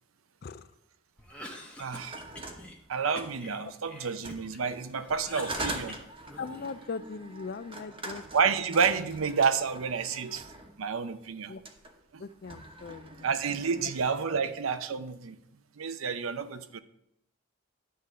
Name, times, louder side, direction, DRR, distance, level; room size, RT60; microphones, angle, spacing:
Cough, 1.2-2.8 3.2-4.6 5.0-6.9, left 1 dB, 5° left, 1.0 m, -45 dB
voice 1, 1.8-2.2 2.9-6.0 8.3-10.5 10.8-11.5 12.1-12.2 13.2-15.4 15.8-16.8, right 6 dB, 80° right, 11 dB, 0.6 m, -29 dB
sound 1, 1.9-3.5 4.1-10.8 11.5-11.9 12.3-14.3, right 2 dB, 25° right, 1.0 m, -43 dB
voice 2, 6.4-8.2 11.5-11.6 12.2-13.3 13.7-13.9 14.3-14.5, left 4 dB, 50° left, 14 dB, 0.4 m, -40 dB
11.0 x 3.7 x 6.6 m, 0.80 s
head